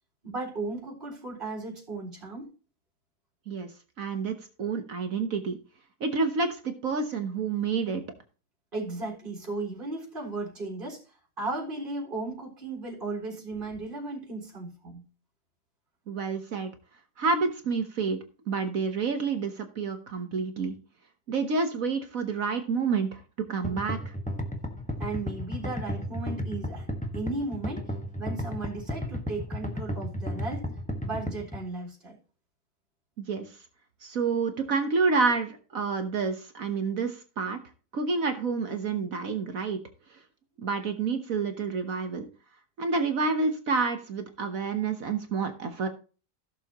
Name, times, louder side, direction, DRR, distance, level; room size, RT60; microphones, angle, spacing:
voice 1, 0.2-2.5 8.7-11.0 11.4-15.0 25.0-27.9 28.2-30.6 31.0-32.2, right 3 dB, 30° right, -2 dB, 4.3 m, -35 dB
voice 2, 4.0-5.6 6.0-8.0 16.1-16.7 17.2-18.2 18.5-20.7 21.3-23.2 23.5-24.1 33.2-33.6 34.0-37.6 37.9-39.8 40.1-40.2 40.6-42.3 42.8-45.9, right 4 dB, 55° right, 7 dB, 1.5 m, -29 dB
sound 1, 23.6-31.6, left 1 dB, 5° left, 1.1 m, -33 dB
16.0 x 7.0 x 2.9 m, 0.35 s
omnidirectional pair, 1.8 m